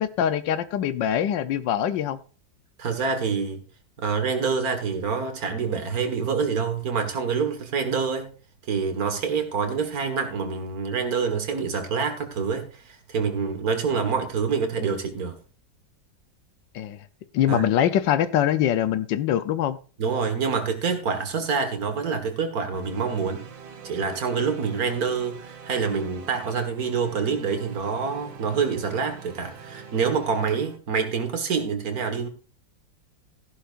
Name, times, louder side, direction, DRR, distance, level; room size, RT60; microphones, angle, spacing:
voice 1, 0.0-2.2 16.7-17.0 17.3-19.8, left 10 dB, 75° left, 1.5 m, -23 dB
voice 2, 2.8-3.6 4.0-8.3 8.7-15.4 17.5-17.7 20.0-23.5 23.8-32.3, right 5 dB, 50° right, 2.1 m, -26 dB
sound 1, 22.7-30.8, right 6 dB, 70° right, 2.0 m, -44 dB
14.0 x 11.5 x 2.5 m
omnidirectional pair, 2.0 m